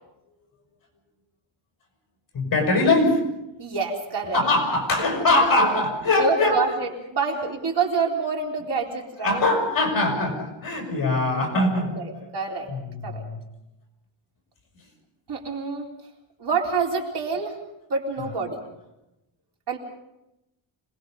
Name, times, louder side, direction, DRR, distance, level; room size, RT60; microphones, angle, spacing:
voice 1, 2.3-3.2 4.3-6.5 9.2-11.9 12.7-13.4, left 2 dB, 50° left, 1 dB, 6.8 m, -22 dB
voice 2, 3.6-4.5 5.3-5.8 6.2-9.4 11.6-12.7 13.0-13.2 15.3-15.9 16.4-17.6 17.9-18.6 19.7-19.8, right 5 dB, 60° right, -1 dB, 3.9 m, -27 dB
26.0 x 20.5 x 5.4 m, 0.91 s
wide cardioid pair, 180°, 46 cm